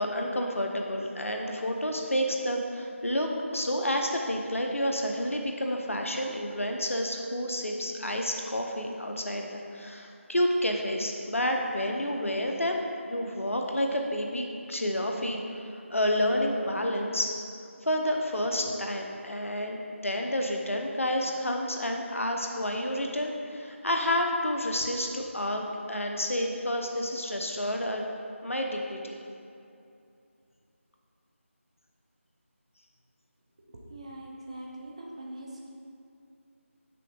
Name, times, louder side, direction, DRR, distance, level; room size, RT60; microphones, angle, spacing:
voice 1, 0.0-12.8 13.1-17.3 17.8-28.1 28.4-29.2, left 1 dB, 70° left, 2 dB, 0.8 m, -30 dB
voice 2, 33.7-35.7, right 1 dB, 25° right, -1 dB, 0.6 m, -42 dB
6.5 x 5.5 x 3.7 m, 2.6 s
figure-of-eight pair, 165°, 7 cm